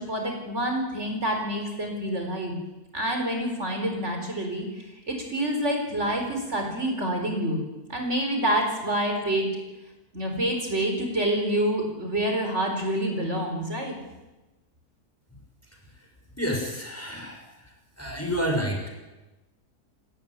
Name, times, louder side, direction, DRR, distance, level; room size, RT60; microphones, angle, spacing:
voice 1, 0.0-2.5 2.9-7.6 7.9-9.5 10.1-14.0, right 1 dB, 45° right, 3 dB, 4.8 m, -27 dB
voice 2, 16.4-17.4 18.0-18.9, equal, 10° left, 2 dB, 5.8 m, -29 dB
29.0 x 14.0 x 9.6 m, 1.1 s
omnidirectional pair, 1.6 m